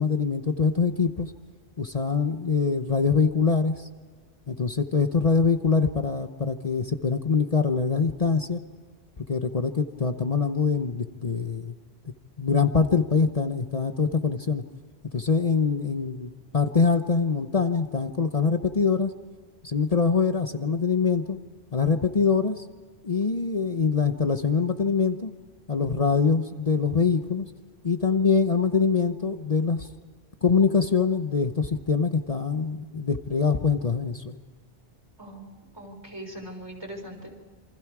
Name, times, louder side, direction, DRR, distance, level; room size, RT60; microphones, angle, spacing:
voice 1, 0.0-1.3 1.8-3.9 4.5-8.6 9.3-11.7 12.4-14.6 15.1-19.1 19.6-21.4 21.7-22.6 23.0-25.3 25.7-27.5 27.8-29.9 30.4-34.4, left 5 dB, 35° left, 8 dB, 0.9 m, -24 dB
voice 2, 35.2-37.3, right 1 dB, 20° right, 2 dB, 4.3 m, -41 dB
28.0 x 24.5 x 4.8 m, 1.5 s
omnidirectional pair, 1.1 m